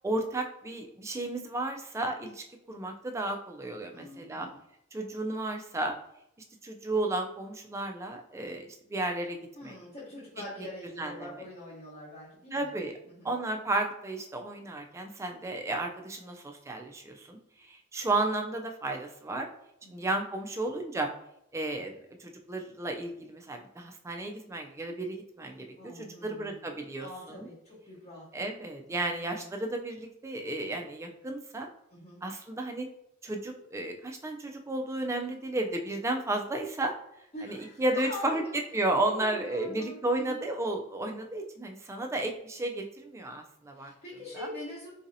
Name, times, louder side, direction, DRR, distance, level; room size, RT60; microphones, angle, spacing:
voice 1, 0.0-4.5 4.9-5.9 6.6-9.8 11.0-11.3 12.5-13.0 13.2-17.4 17.6-19.5 19.9-21.1 21.5-27.5 28.3-31.7 32.2-32.9 33.2-37.0 37.4-38.4 38.7-43.9 44.4-44.5, right 2 dB, 15° right, 4 dB, 0.3 m, -33 dB
voice 2, 3.9-4.6 9.6-12.7 13.0-13.4 19.8-20.2 25.8-26.6 27.0-28.3 28.9-29.5 31.9-32.2 37.3-38.5 39.1-40.4 43.7-44.9, left 1 dB, 40° left, -7 dB, 0.9 m, -44 dB
3.8 x 2.7 x 2.6 m, 0.80 s
head